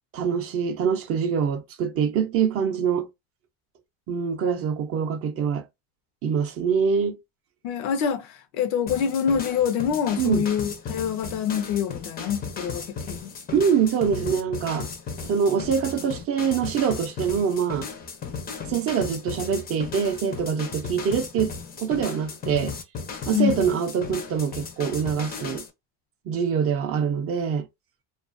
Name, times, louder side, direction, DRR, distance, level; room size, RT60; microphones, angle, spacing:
voice 1, 0.1-3.1 4.1-5.7 6.2-7.2 10.2-10.5 13.5-14.9 15.2-17.9 18.7-22.7 23.3-25.6 26.3-27.7, right 7 dB, 35° right, 0.4 m, -24 dB
voice 2, 7.6-13.3 23.3-23.7, left 8 dB, 90° left, 0.7 m, -26 dB
sound 1, 8.9-25.7, left 5 dB, 25° left, 0.4 m, -36 dB
2.4 x 2.2 x 2.4 m
cardioid pair, 130°, 40 cm